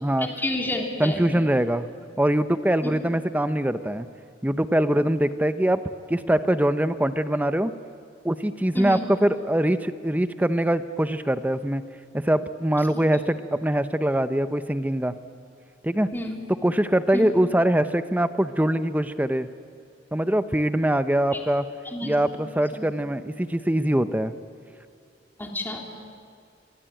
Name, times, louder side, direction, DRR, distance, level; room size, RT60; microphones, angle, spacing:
voice 1, 0.2-1.4 2.8-2.9 8.7-9.0 16.1-16.4 17.1-17.2 21.3-21.4 21.8-22.8 25.4-25.9, left 1 dB, 10° left, 0 dB, 3.3 m, -30 dB
voice 2, 1.0-1.9 2.2-4.1 4.4-5.8 6.1-7.7 8.2-11.8 12.1-15.2 15.8-16.1 16.6-19.5 20.1-21.7 22.0-24.3, right 1 dB, 10° right, 11 dB, 0.8 m, -23 dB
26.5 x 23.0 x 9.1 m, 2.3 s
head